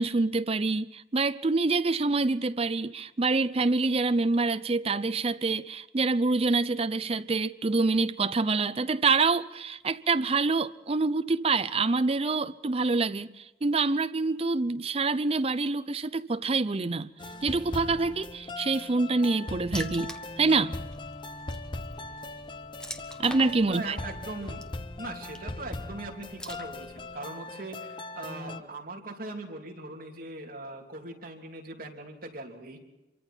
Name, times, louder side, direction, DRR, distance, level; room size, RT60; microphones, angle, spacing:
voice 1, 0.0-17.1 17.4-20.8 23.2-24.0, right 3 dB, 35° right, 0.6 m, -26 dB
sound 1, 17.2-28.6, left 2 dB, 25° left, 0.8 m, -40 dB
Water / Splash splatter, 19.7-27.2, left 1 dB, 5° left, 1.1 m, -46 dB
voice 2, 23.5-24.6 25.0-32.8, right 2 dB, 50° right, 3.1 m, -40 dB
26.5 x 23.5 x 4.5 m
head